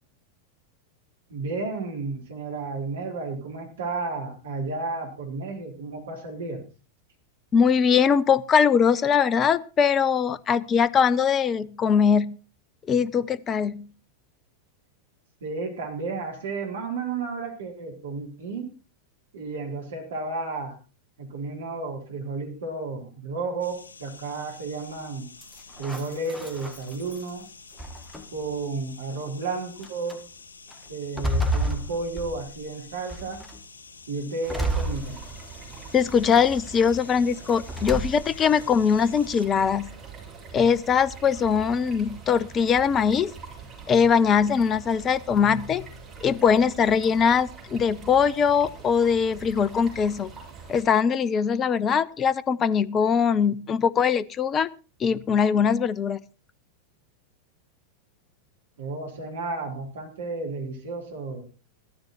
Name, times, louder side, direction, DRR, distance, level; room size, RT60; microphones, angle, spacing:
voice 1, 1.3-6.6 15.4-18.7 19.3-20.8 21.2-25.3 25.8-27.5 28.3-30.2 30.9-33.4 34.1-35.2 58.8-61.5, right 3 dB, 60° right, 2 dB, 4.2 m, -32 dB
voice 2, 7.5-12.4 12.9-13.9 35.9-39.9 40.5-43.3 43.9-45.8 46.2-50.3 50.7-54.7 55.0-56.2, left 6 dB, 25° left, 19 dB, 0.7 m, -21 dB
sound 1, 23.6-39.5, left 5 dB, 70° left, 2.5 m, -48 dB
sound 2, 25.4-27.3 27.8-28.5 29.3-29.4 29.8-30.2 30.7-32.7 33.1-33.6 34.5-35.6 36.1-36.7 37.7-38.5, right 1 dB, ahead, 1.7 m, -31 dB
sound 3, 34.4-50.8, right 5 dB, 20° right, 7.3 m, -44 dB
14.5 x 13.0 x 4.4 m, 0.34 s
figure-of-eight pair, 90°, 0 cm